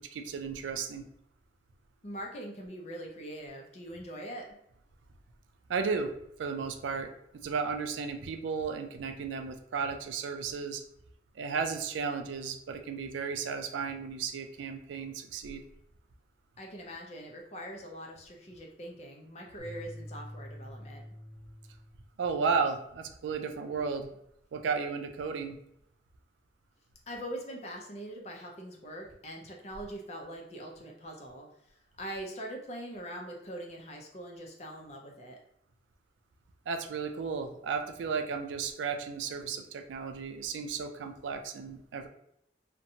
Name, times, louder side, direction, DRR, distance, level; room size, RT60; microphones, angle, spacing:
voice 1, 0.1-1.0 5.7-6.1 6.4-10.8 11.4-15.6 22.2-24.1 24.5-25.6 36.7-42.1, right 5 dB, 85° right, 6 dB, 0.3 m, -34 dB
voice 2, 2.0-4.6 16.6-21.0 27.1-35.4, equal, 35° left, 0 dB, 0.5 m, -42 dB
sound 1, 19.6-22.1, left 1 dB, 55° right, 0.7 m, -46 dB
2.6 x 2.2 x 2.7 m, 0.75 s
head